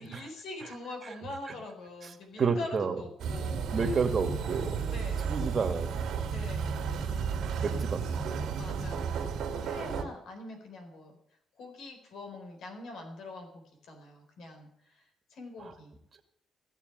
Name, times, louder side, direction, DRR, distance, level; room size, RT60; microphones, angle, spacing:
voice 1, 0.0-4.0 4.9-5.6 6.3-7.9 8.6-11.2 11.6-15.9, left 2 dB, 75° left, 4 dB, 4.2 m, -44 dB
voice 2, 2.4-2.9 3.7-4.9 5.2-6.2 7.6-8.5, right 5 dB, 40° right, 6 dB, 2.2 m, -30 dB
sound 1, 3.2-10.0, right 6 dB, 75° right, 2.4 m, -33 dB
17.0 x 7.0 x 9.3 m, 0.73 s
cardioid pair, 90°, 0 cm